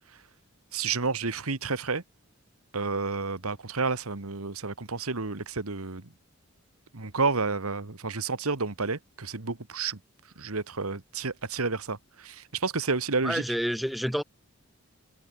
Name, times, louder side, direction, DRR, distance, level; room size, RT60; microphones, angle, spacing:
voice 1, 0.7-2.0 2.7-6.0 6.9-10.0 10.4-13.4, right 4 dB, 90° right, 1.7 m, -30 dB
voice 2, 13.2-14.2, equal, ahead, 2.7 m, -28 dB
head